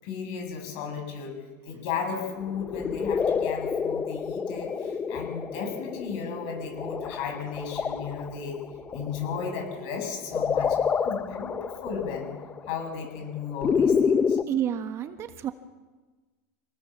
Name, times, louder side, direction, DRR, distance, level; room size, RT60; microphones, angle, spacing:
voice 1, 0.0-1.4 1.6-8.6 8.9-12.3 12.7-14.4, left 6 dB, 55° left, 4 dB, 7.7 m, -35 dB
sound 1, 2.4-14.4, left 6 dB, 15° left, 0.8 m, -28 dB
voice 2, 14.5-15.5, right 10 dB, 30° right, 8 dB, 1.5 m, -29 dB
26.5 x 19.0 x 7.4 m, 1.3 s
supercardioid pair, 145°, 9 cm